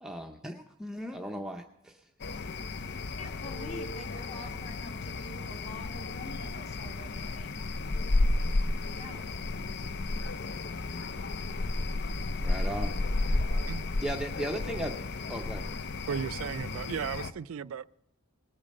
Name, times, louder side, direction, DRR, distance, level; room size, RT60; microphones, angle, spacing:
voice 1, 0.0-2.1 12.4-13.1 14.0-15.0 15.3-15.7, right 1 dB, 5° right, 0.6 m, -37 dB
sound 1, 2.2-17.3, left 2 dB, 50° left, 0.6 m, -32 dB
voice 2, 3.2-7.6 8.9-9.3, left 2 dB, 30° left, 2.2 m, -46 dB
voice 3, 13.5-13.8 16.1-17.9, right 7 dB, 75° right, 0.4 m, -35 dB
19.5 x 8.7 x 5.3 m
head